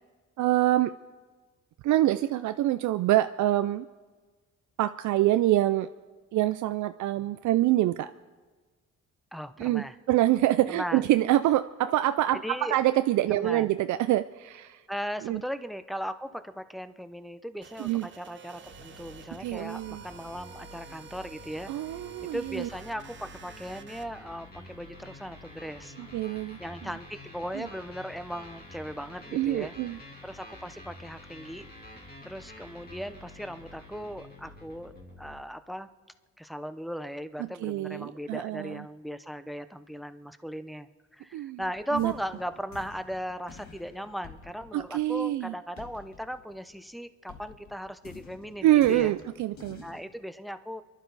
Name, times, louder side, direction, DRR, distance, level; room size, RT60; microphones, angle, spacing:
voice 1, 0.4-0.9 1.8-3.9 4.8-5.9 6.3-8.1 9.6-14.8 15.2-15.4 17.8-18.1 19.4-20.0 21.7-22.7 26.0-26.6 27.5-27.7 29.3-30.0 37.4-38.8 41.3-41.6 41.9-42.1 44.7-45.5 48.6-49.8, right 14 dB, 75° right, 11 dB, 0.5 m, -25 dB
voice 2, 9.3-10.0 10.7-11.0 12.4-12.8 13.3-13.7 14.9-21.7 22.3-25.9 26.6-29.7 30.2-31.7 32.2-35.9 36.4-49.1 49.8-50.8, equal, ahead, 11 dB, 0.7 m, -38 dB
sound 1, 17.6-24.1, right 7 dB, 40° right, 0.9 m, -49 dB
sound 2, 18.6-35.4, left 2 dB, 30° left, 2.7 m, -49 dB
sound 3, 41.6-46.9 47.3-50.0, left 5 dB, 65° left, 1.8 m, -50 dB
30.0 x 11.5 x 4.0 m, 1.3 s
cardioid pair, 90°, 30 cm